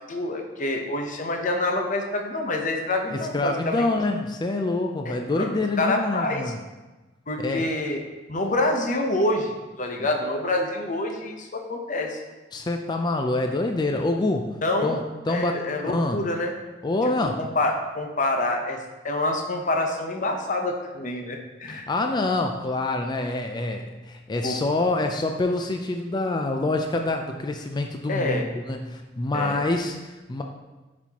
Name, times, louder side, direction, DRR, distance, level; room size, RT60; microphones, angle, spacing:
voice 1, 0.1-3.8 5.0-6.5 7.3-8.0 8.3-12.2 14.6-15.0 15.3-16.5 17.4-21.9 24.4-24.6 28.1-28.4 29.3-29.6, left 2 dB, 45° left, 3 dB, 0.8 m, -27 dB
voice 2, 3.1-6.6 7.4-7.7 12.5-14.5 14.8-16.2 16.8-17.4 21.7-30.4, left 2 dB, 25° left, 4 dB, 0.4 m, -26 dB
10.0 x 4.2 x 2.9 m, 1.2 s
head